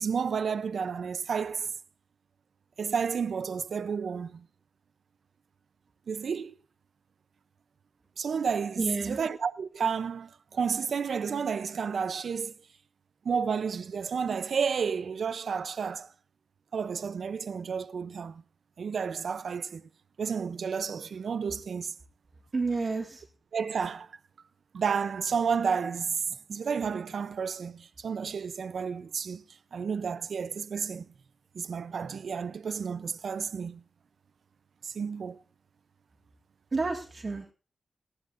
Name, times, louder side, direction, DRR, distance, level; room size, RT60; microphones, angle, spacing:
voice 1, 0.0-1.7 2.8-4.4 6.1-6.5 8.2-12.5 13.2-16.1 16.7-18.3 18.8-19.8 20.2-21.9 23.5-24.1 24.7-26.2 26.5-29.4 29.7-31.1 31.5-33.8 34.8-35.4, right 6 dB, 75° right, 0.6 m, -31 dB
voice 2, 8.8-9.2 22.5-23.2 36.7-37.4, right 3 dB, 40° right, 1.9 m, -30 dB
19.5 x 15.0 x 2.6 m
wide cardioid pair, 95°, 0 cm